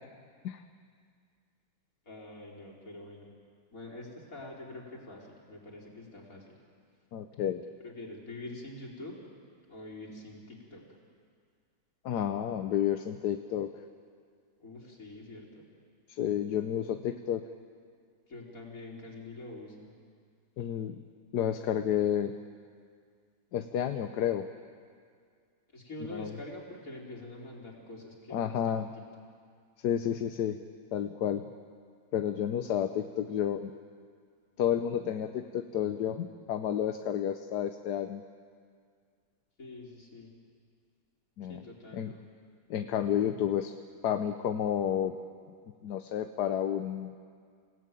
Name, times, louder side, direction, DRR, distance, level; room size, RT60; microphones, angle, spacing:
voice 1, 2.1-3.3 3.7-6.5 7.8-9.2 9.7-10.8 14.6-15.6 18.3-19.9 25.7-28.9 39.6-40.3 41.5-42.2, left 2 dB, 55° left, -2 dB, 4.5 m, -45 dB
voice 2, 7.1-7.6 12.0-13.7 16.1-17.4 20.6-21.0 21.3-22.3 23.5-24.5 26.0-26.3 28.3-28.9 29.8-30.6 30.9-31.5 32.1-33.7 34.6-38.2 41.4-41.6 41.9-42.1 42.7-43.7 44.0-45.1 45.8-47.2, left 9 dB, 80° left, 7 dB, 1.4 m, -31 dB
28.5 x 17.5 x 9.1 m, 2.1 s
omnidirectional pair, 1.8 m